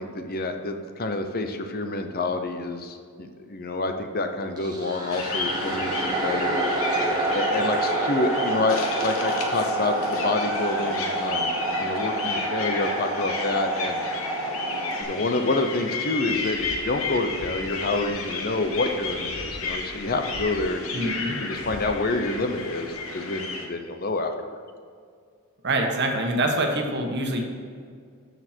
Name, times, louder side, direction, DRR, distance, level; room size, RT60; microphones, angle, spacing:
voice 1, 0.0-6.6 7.3-14.0 15.0-21.1 21.4-24.3, left 2 dB, 40° left, 6 dB, 0.8 m, -28 dB
sound 1, 4.6-15.0, right 2 dB, 20° right, 1.4 m, -27 dB
sound 2, 5.1-23.7, left 4 dB, 65° left, 1.3 m, -33 dB
voice 2, 20.9-21.4 25.6-27.4, right 1 dB, 50° right, 2 dB, 1.4 m, -25 dB
13.0 x 6.7 x 4.5 m, 2.1 s
head